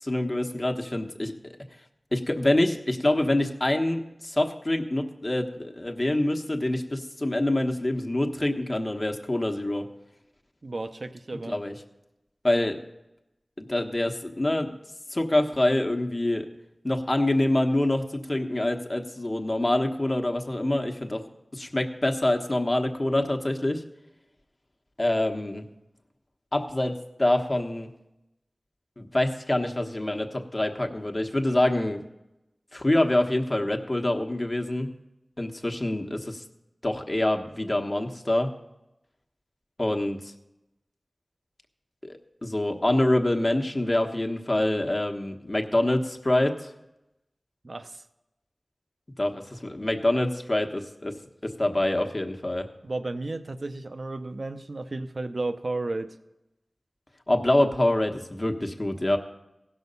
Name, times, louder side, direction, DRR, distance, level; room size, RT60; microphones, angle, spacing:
voice 1, 0.0-1.5 2.1-9.9 11.5-11.7 12.4-12.8 13.6-14.8 15.1-16.5 16.8-21.2 21.5-23.8 25.0-25.6 26.5-27.9 29.0-32.0 32.7-34.9 35.4-36.4 36.8-38.5 39.8-40.2 42.0-46.7 49.2-51.1 51.4-52.7 57.3-59.2, left 1 dB, 40° left, 4 dB, 1.2 m, -26 dB
voice 2, 10.6-11.6 47.6-48.0 52.8-56.2, right 2 dB, 65° right, 9 dB, 0.7 m, -33 dB
16.0 x 6.3 x 5.4 m, 0.92 s
wide cardioid pair, 45°, 0 cm